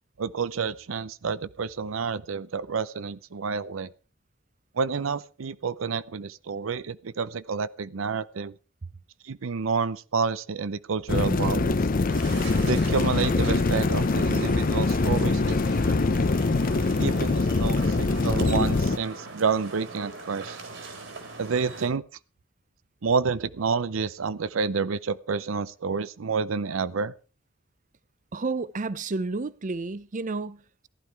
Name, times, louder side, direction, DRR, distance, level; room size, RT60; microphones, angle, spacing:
voice 1, 0.2-3.9 4.7-8.6 9.2-11.8 12.6-16.1 17.0-20.6 21.4-22.0 23.0-27.1, right 5 dB, 90° right, 0.6 m, -29 dB
sound 1, 11.1-19.0, left 3 dB, 45° left, 0.6 m, -23 dB
sound 2, 12.1-21.9, right 3 dB, 70° right, 3.3 m, -41 dB
voice 2, 28.3-30.9, right 3 dB, 40° right, 0.6 m, -31 dB
15.0 x 11.5 x 4.6 m
head